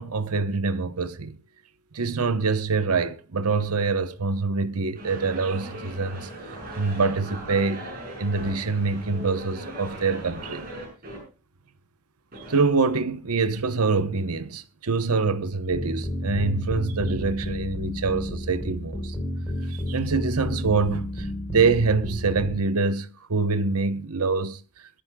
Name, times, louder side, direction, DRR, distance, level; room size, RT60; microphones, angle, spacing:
voice 1, 0.0-1.4 1.9-6.3 6.8-7.9 8.2-10.7 12.5-19.1 19.7-24.6, right 4 dB, 85° right, 1.0 m, -25 dB
sound 1, 4.9-11.2 12.3-12.6, right 1 dB, 40° right, 7.0 m, -39 dB
sound 2, 15.7-22.6, left 1 dB, 15° left, 3.8 m, -31 dB
21.5 x 13.5 x 2.3 m
head